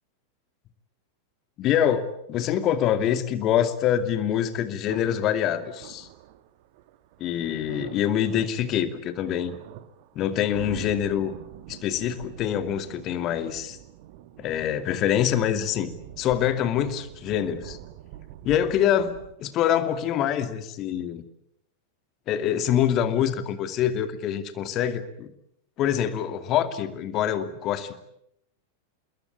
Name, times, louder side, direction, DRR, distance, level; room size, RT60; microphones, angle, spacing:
voice 1, 1.6-6.1 7.2-9.5 10.1-11.4 11.7-13.8 14.4-17.8 18.4-21.2 22.3-25.3 25.8-27.9, left 10 dB, 35° left, 9 dB, 2.5 m, -25 dB
sound 1, 4.9-19.4, right 13 dB, 50° right, 1.8 m, -45 dB
27.5 x 21.5 x 8.7 m, 0.77 s
figure-of-eight pair, 90°, 0 cm